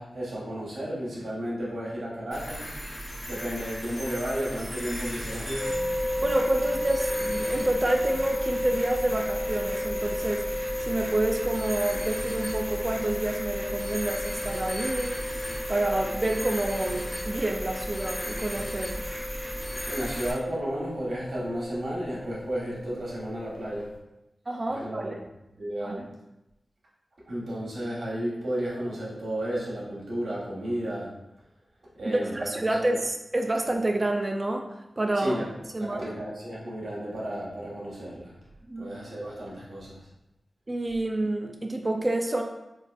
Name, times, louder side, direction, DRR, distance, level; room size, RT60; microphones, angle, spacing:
voice 1, 0.0-2.7 3.3-5.7 19.8-23.9 24.7-25.1 25.6-26.1 27.3-31.2 31.9-32.5 32.8-33.0 35.1-38.3 38.8-40.1, equal, 75° right, -6 dB, 1.2 m, -33 dB
sound 1, 2.3-20.3, equal, 35° left, 1.1 m, -36 dB
sound 2, 5.6-24.0, left 1 dB, 10° left, 1.2 m, -34 dB
voice 2, 6.2-10.5 10.9-15.2 15.7-19.0 24.5-25.1 25.8-26.0 32.0-34.7 35.0-35.4 35.7-36.0 38.7-38.9 40.7-42.4, right 1 dB, 30° right, 3 dB, 0.4 m, -28 dB
3.8 x 2.5 x 2.5 m, 0.91 s
wide cardioid pair, 85°, 0 cm